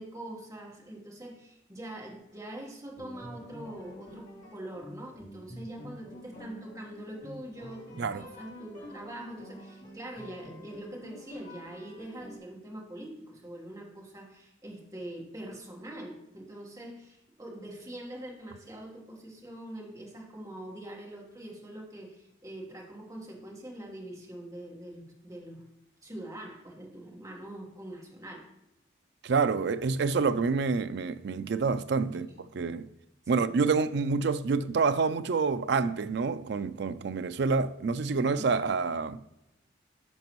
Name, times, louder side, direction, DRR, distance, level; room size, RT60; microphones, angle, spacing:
voice 1, 0.0-25.6 26.0-28.5 32.1-32.4 33.3-33.4, right 1 dB, 15° right, 1.4 m, -44 dB
sound 1, 3.0-12.4, left 1 dB, 40° left, 2.4 m, -47 dB
voice 2, 29.2-32.3 32.5-32.9 33.3-39.2, right 4 dB, 60° right, 0.4 m, -27 dB
10.5 x 5.9 x 3.0 m
head